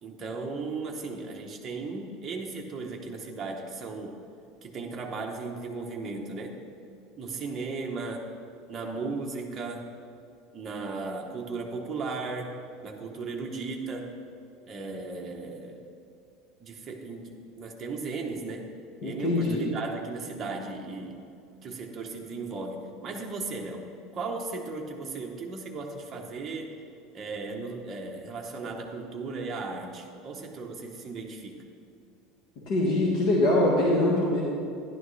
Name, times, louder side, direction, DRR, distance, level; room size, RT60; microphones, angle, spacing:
voice 1, 0.0-4.2 4.6-6.6 7.2-8.3 8.7-9.9 10.5-14.1 14.7-15.9 16.6-18.7 19.0-21.2 21.6-26.7 27.1-31.6, right 3 dB, 20° right, 0 dB, 1.0 m, -36 dB
voice 2, 19.0-19.7 32.7-34.4, left 1 dB, 50° left, -6 dB, 1.6 m, -23 dB
11.5 x 10.5 x 3.2 m, 2.6 s
cardioid pair, 175°, 0 cm